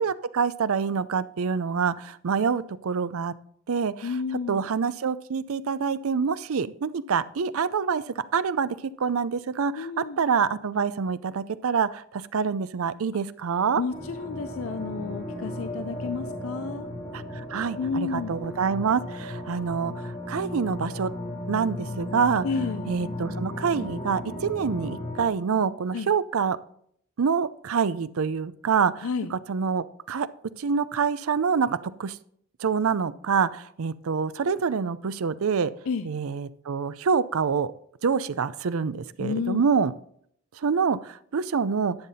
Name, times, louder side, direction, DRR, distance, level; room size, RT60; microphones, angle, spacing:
voice 1, 0.0-3.3 3.7-4.1 4.5-8.0 8.3-13.8 17.1-21.1 21.5-22.5 22.9-26.6 27.2-30.3 30.6-32.2 32.6-35.7 36.0-37.7 38.0-39.9 40.6-41.9, right 6 dB, 85° right, 16 dB, 0.5 m, -26 dB
voice 2, 4.0-4.6 9.8-10.2 13.8-16.9 17.8-18.3 22.4-22.9 25.9-26.1 29.0-29.3 35.9-36.1 39.2-39.6, left 5 dB, 80° left, 11 dB, 0.5 m, -31 dB
sound 1, 13.9-25.3, left 1 dB, 35° left, 2.0 m, -35 dB
11.5 x 7.4 x 4.1 m, 0.66 s
head